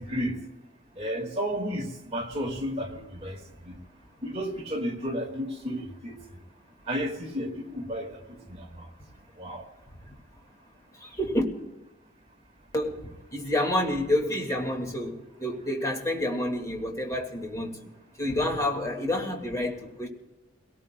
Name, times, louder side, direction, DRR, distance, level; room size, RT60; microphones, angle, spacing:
voice 1, 0.1-0.4 1.0-3.4 3.7-3.8 4.2-6.1 6.9-8.1 9.4-9.6, equal, 30° right, 1 dB, 1.9 m, -32 dB
voice 2, 11.0-11.4 12.7-17.9 18.2-20.1, left 1 dB, 15° left, 1 dB, 1.9 m, -29 dB
30.0 x 18.5 x 2.2 m, 1.1 s
head